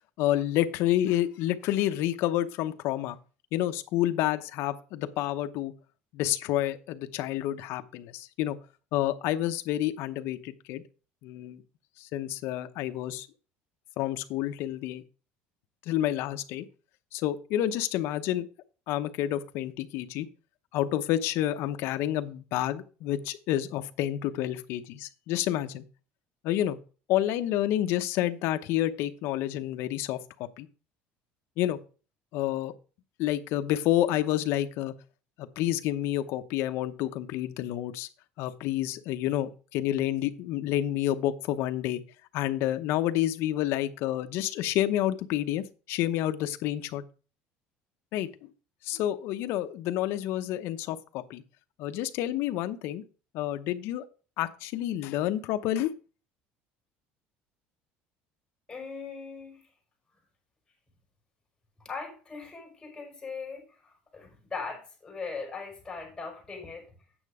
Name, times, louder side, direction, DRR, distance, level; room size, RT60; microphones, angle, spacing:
voice 1, 0.2-3.2 3.5-5.7 6.1-8.6 8.9-10.8 11.2-11.6 12.0-13.3 14.0-15.0 15.9-16.6 17.1-18.5 18.9-20.3 20.7-25.8 26.4-26.8 27.1-30.2 30.6-30.7 31.6-31.8 32.3-32.7 33.2-34.9 35.4-38.1 38.4-42.0 42.3-47.0 48.1-48.3 48.8-51.4 51.8-53.0 53.3-54.0 54.4-55.9, left 13 dB, 65° left, 9 dB, 0.9 m, -29 dB
voice 2, 58.7-59.7 61.8-66.9, left 4 dB, 15° left, 0 dB, 4.9 m, -40 dB
9.0 x 6.5 x 4.9 m, 0.36 s
cardioid pair, 135°, 5 cm